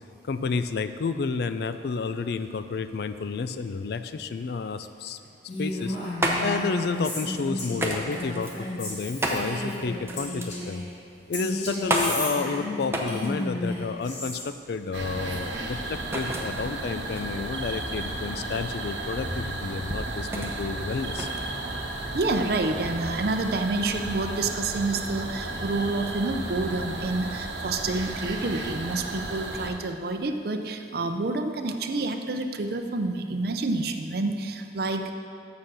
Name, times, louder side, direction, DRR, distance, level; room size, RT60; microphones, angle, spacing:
voice 1, 0.2-5.2 5.6-6.0 6.4-10.8 11.3-21.3, left 4 dB, 60° left, 11 dB, 0.4 m, -30 dB
Female speech woman speaking, 5.5-10.9 11.3-14.4, left 1 dB, 75° left, 2.1 m, -33 dB
sound 1, 5.7-22.3, right 1 dB, 15° right, 0.7 m, -33 dB
sound 2, 14.9-29.7, right 2 dB, 80° right, 1.0 m, -34 dB
voice 2, 22.1-35.1, right 2 dB, 55° right, 6 dB, 0.6 m, -28 dB
7.1 x 6.7 x 6.3 m, 2.4 s
head